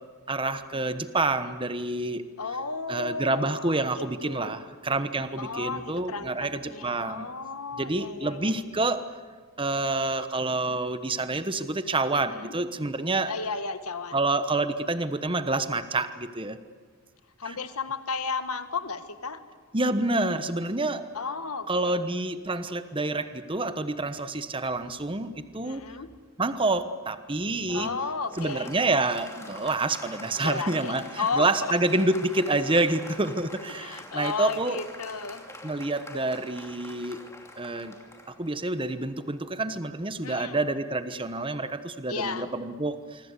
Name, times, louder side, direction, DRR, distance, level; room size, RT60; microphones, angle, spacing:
voice 1, 0.3-2.2 2.9-7.4 7.8-9.0 9.6-13.3 14.1-16.6 17.4-17.6 19.7-21.1 21.7-25.8 26.4-27.9 28.4-34.8 35.6-37.2 37.6-37.9 38.4-43.3, right 2 dB, 25° right, 11 dB, 1.1 m, -28 dB
voice 2, 2.4-4.6 5.4-8.6 12.3-12.5 13.3-14.2 17.4-19.4 21.1-22.0 25.6-26.1 27.7-28.7 30.4-31.7 33.7-35.4 40.2-40.6 42.1-42.5, left 4 dB, 80° left, 10 dB, 1.7 m, -34 dB
Applause, 27.7-39.6, left 2 dB, 10° left, 2.7 m, -45 dB
25.5 x 25.5 x 8.3 m, 1.5 s
head